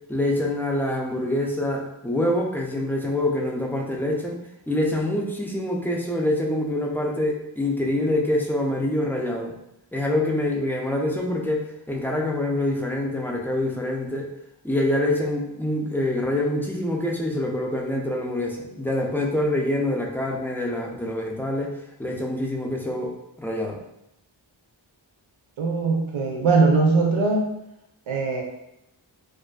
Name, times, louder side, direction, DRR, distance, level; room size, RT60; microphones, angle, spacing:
voice 1, 0.1-4.4 4.7-9.5 9.9-14.3 14.6-21.7 22.0-23.8, left 1 dB, 5° left, -1 dB, 0.3 m, -25 dB
voice 2, 25.6-27.5 28.1-28.4, right 3 dB, 80° right, 0 dB, 0.6 m, -20 dB
2.4 x 2.3 x 2.2 m, 0.83 s
cardioid pair, 60°, 47 cm